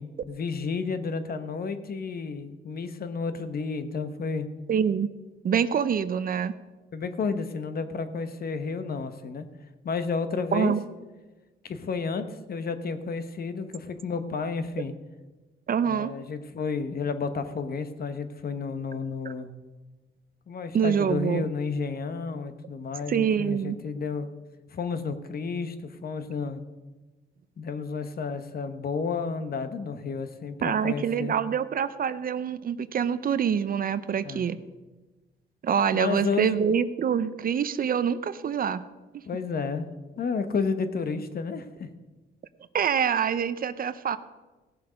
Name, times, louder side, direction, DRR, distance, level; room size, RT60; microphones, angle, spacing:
voice 1, 0.0-4.5 6.9-9.5 9.8-10.7 11.6-14.9 15.9-19.5 20.5-24.3 24.7-26.6 27.6-31.3 34.2-34.5 35.9-36.6 39.3-41.9, left 5 dB, 50° left, 10 dB, 1.1 m, -31 dB
voice 2, 4.7-5.1 5.4-6.5 10.5-10.8 15.7-16.1 20.7-21.5 23.1-23.8 30.6-34.6 35.6-38.8 42.7-44.2, right 7 dB, 45° right, 14 dB, 0.6 m, -25 dB
16.5 x 7.0 x 5.2 m, 1.2 s
cardioid pair, 90°, 20 cm